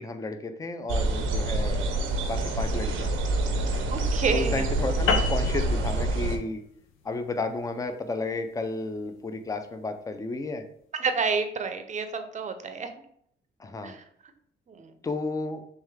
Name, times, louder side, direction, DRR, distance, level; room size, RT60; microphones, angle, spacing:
voice 1, 0.0-1.9 2.2-3.1 4.3-6.6 7.0-10.6 13.6-13.9 15.0-15.6, left 3 dB, 15° left, 7 dB, 0.5 m, -32 dB
sound 1, 0.9-6.4, right 2 dB, 85° right, 0.6 m, -27 dB
voice 2, 3.9-4.7 10.9-12.9 13.8-14.0 14.7-14.9, right 5 dB, 40° right, 8 dB, 0.6 m, -29 dB
sound 2, 5.1-9.8, left 5 dB, 85° left, 0.6 m, -33 dB
3.4 x 3.2 x 3.2 m, 0.66 s
cardioid pair, 90°, 20 cm